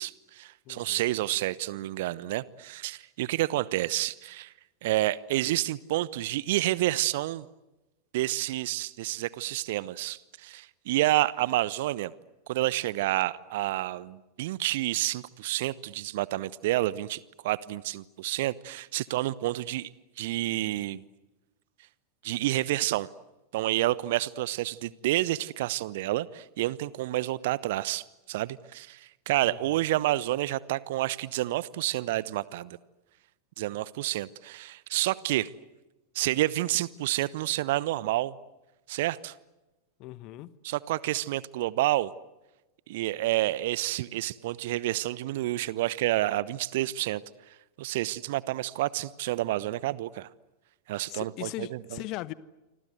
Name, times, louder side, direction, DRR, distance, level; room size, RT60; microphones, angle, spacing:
voice 1, 0.0-4.5 4.8-7.5 8.1-12.1 12.5-19.9 20.2-21.0 22.2-23.1 23.5-32.8 33.6-35.5 36.1-38.3 38.9-39.3 40.6-42.1 42.9-47.2 47.8-50.3 50.9-52.0, right 16 dB, 50° right, 20 dB, 1.0 m, -29 dB
voice 2, 0.7-1.1 29.4-29.8 40.0-40.5 51.1-52.3, left 18 dB, 40° left, 19 dB, 1.1 m, -39 dB
28.0 x 25.5 x 8.0 m, 1.0 s
figure-of-eight pair, 90°, 0 cm